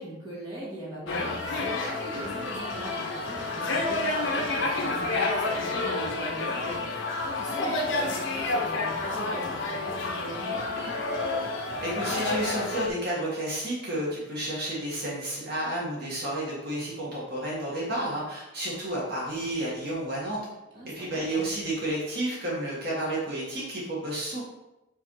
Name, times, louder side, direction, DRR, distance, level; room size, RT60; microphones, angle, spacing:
voice 1, 0.0-10.6 20.7-21.4, right 1 dB, 20° right, -7 dB, 1.9 m, -41 dB
sound 1, 1.1-12.9, left 2 dB, 70° left, 1.0 m, -29 dB
voice 2, 11.8-20.4 20.8-24.4, right 1 dB, 50° right, -6 dB, 1.7 m, -31 dB
5.1 x 4.7 x 4.8 m, 0.97 s
head